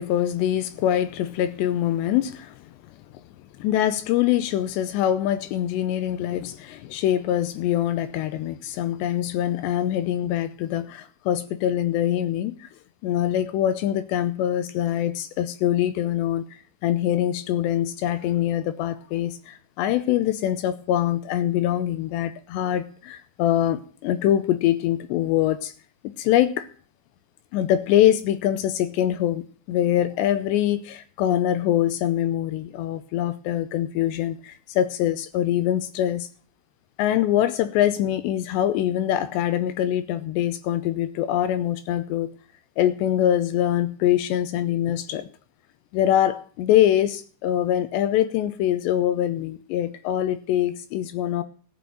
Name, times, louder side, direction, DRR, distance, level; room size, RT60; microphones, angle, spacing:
voice 1, 0.0-2.7 3.1-3.2 3.6-12.7 13.0-25.7 26.0-26.7 27.5-36.3 37.0-42.3 42.8-45.3 45.9-51.4, left 11 dB, 80° left, 2.7 m, -24 dB
15.0 x 6.2 x 9.3 m
omnidirectional pair, 5.3 m